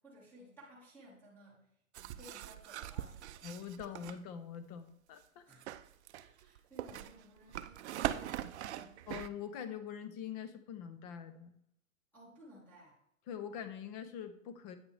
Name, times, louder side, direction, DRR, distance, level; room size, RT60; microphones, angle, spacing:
voice 1, 0.0-3.5 4.0-4.1 5.4-5.6 6.1-9.0 12.1-13.0, right 1 dB, 5° left, -6 dB, 2.1 m, -58 dB
sound 1, 1.9-4.2 5.5-9.3, right 12 dB, 55° right, 0.5 m, -41 dB
voice 2, 3.4-5.4 9.1-11.5 13.3-14.8, left 8 dB, 30° left, 10 dB, 0.7 m, -44 dB
8.8 x 6.0 x 3.4 m, 0.75 s
hypercardioid pair, 145°, 40 cm